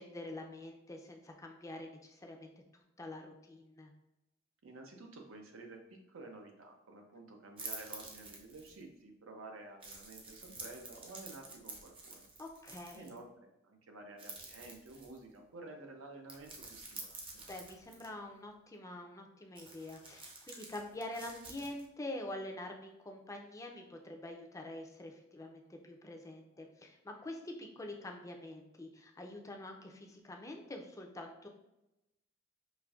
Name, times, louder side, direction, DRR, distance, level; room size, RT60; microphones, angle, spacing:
voice 1, 0.0-3.9 12.4-13.1 17.5-31.5, left 1 dB, 15° left, 2 dB, 0.5 m, -46 dB
voice 2, 4.6-12.3 12.9-13.3 13.6-17.4, right 2 dB, 80° right, 2 dB, 0.7 m, -51 dB
sound 1, 7.6-8.8 9.8-13.2 14.2-15.3 16.3-18.1 19.6-21.9, right 3 dB, 25° right, 0.6 m, -49 dB
5.1 x 2.6 x 2.4 m, 0.92 s
head